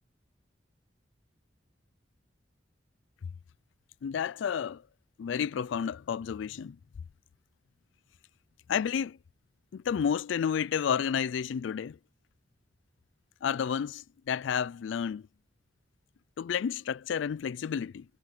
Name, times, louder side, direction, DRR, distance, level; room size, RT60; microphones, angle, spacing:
voice 1, 4.0-4.8 5.2-6.8 8.7-9.2 9.7-12.0 13.4-15.2 16.4-18.0, left 7 dB, 85° left, 0.4 m, -31 dB
head